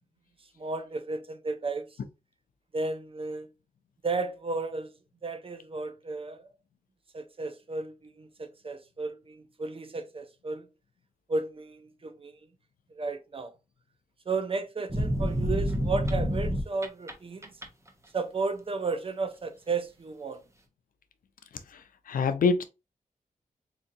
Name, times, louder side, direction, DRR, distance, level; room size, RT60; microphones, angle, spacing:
voice 1, 0.6-2.0 2.7-3.5 4.0-4.9 5.2-6.5 7.1-10.7 11.3-12.4 12.9-13.5 14.3-17.6 18.1-20.4, right 3 dB, 40° right, 0.6 m, -33 dB
sound 1, 14.9-17.1 17.4-17.9, equal, 20° right, 0.8 m, -28 dB
voice 2, 21.7-22.6, left 4 dB, 90° left, 0.5 m, -26 dB
3.9 x 2.6 x 2.6 m
wide cardioid pair, 75°, 14 cm